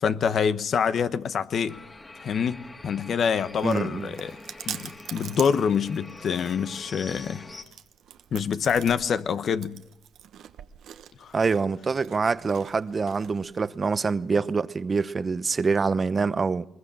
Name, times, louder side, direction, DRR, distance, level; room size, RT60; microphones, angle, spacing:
voice 1, 0.0-1.8 2.2-4.4 4.6-7.5 8.3-9.8 11.2-11.3, left 7 dB, 55° left, 1.1 m, -26 dB
sound 1, 1.7-7.6, left 2 dB, 25° left, 2.7 m, -45 dB
Chewing mastication, 3.0-13.7, right 10 dB, 75° right, 1.2 m, -44 dB
voice 2, 3.6-4.1 11.3-16.7, right 4 dB, 35° right, 0.8 m, -25 dB
22.0 x 21.0 x 7.5 m
cardioid pair, 90°, 0 cm